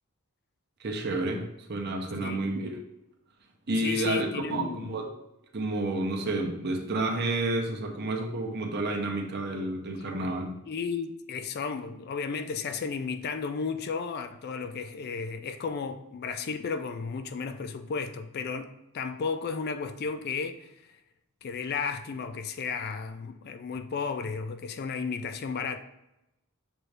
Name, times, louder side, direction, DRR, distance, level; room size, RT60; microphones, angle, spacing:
voice 1, 0.8-2.7 3.7-5.1 5.5-10.5, right 2 dB, 50° right, 0.7 m, -30 dB
voice 2, 3.8-5.0 10.7-20.7 21.4-25.8, left 5 dB, 45° left, 0.3 m, -33 dB
6.1 x 2.6 x 3.3 m
head